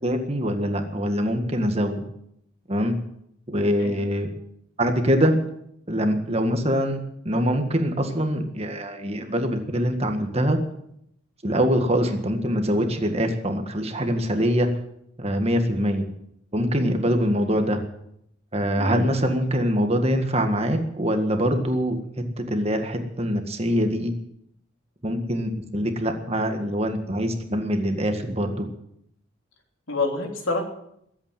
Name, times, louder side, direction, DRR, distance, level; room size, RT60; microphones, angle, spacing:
voice 1, 0.0-2.0 2.7-3.0 3.5-4.3 4.8-5.4 5.9-10.6 11.4-14.7 15.2-16.0 16.5-17.8 18.5-24.1 25.0-28.7, equal, 30° right, 5 dB, 1.8 m, -24 dB
voice 2, 18.8-19.2 29.9-30.6, left 3 dB, 80° left, 2 dB, 3.4 m, -28 dB
21.0 x 8.9 x 7.5 m, 0.75 s
head